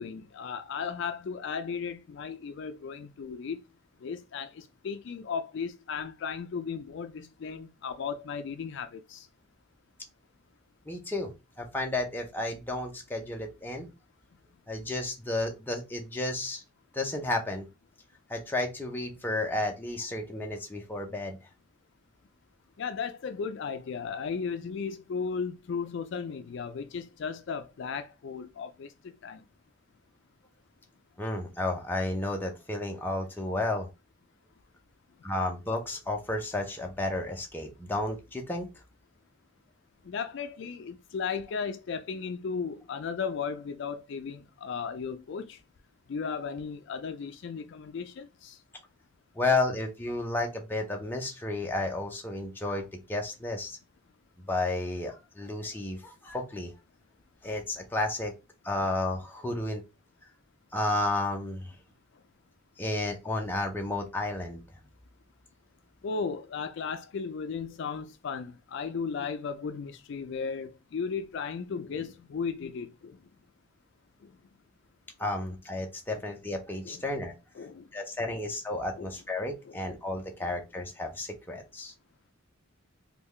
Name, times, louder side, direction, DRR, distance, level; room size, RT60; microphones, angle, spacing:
voice 1, 0.0-3.6 4.0-9.3 22.8-29.4 40.1-45.6 46.1-48.6 66.0-73.2 76.1-76.2 76.8-77.0 77.6-77.9 78.3-78.4 79.0-79.1 79.7-79.8 80.4-80.5, left 5 dB, 60° left, 0.3 m, -35 dB
voice 2, 10.9-11.3 11.6-13.9 14.7-16.6 16.9-17.7 18.3-21.4 31.2-33.9 35.2-38.7 49.4-53.8 54.5-56.7 57.4-58.3 58.6-59.8 60.7-61.7 62.8-64.6 75.2-77.3 77.9-81.9, left 2 dB, 10° left, 0.6 m, -32 dB
3.6 x 2.3 x 3.1 m
head